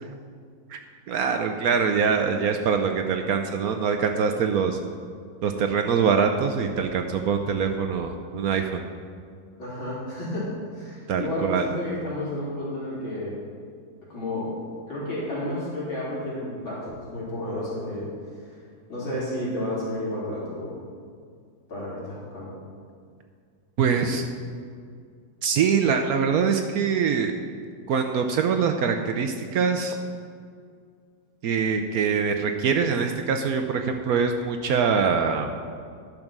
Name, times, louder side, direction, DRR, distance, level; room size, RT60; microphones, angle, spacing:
voice 1, 1.1-4.8 5.4-8.8 11.1-11.7 23.8-24.3 25.4-27.3 27.9-30.0 31.4-35.5, right 6 dB, 75° right, 5 dB, 0.8 m, -24 dB
voice 2, 9.6-13.3 14.1-14.5 14.9-18.1 18.4-18.6 18.9-20.8 21.7-22.5, left 1 dB, 85° left, -9 dB, 4.2 m, -31 dB
11.0 x 6.6 x 6.0 m, 2.1 s
omnidirectional pair, 2.2 m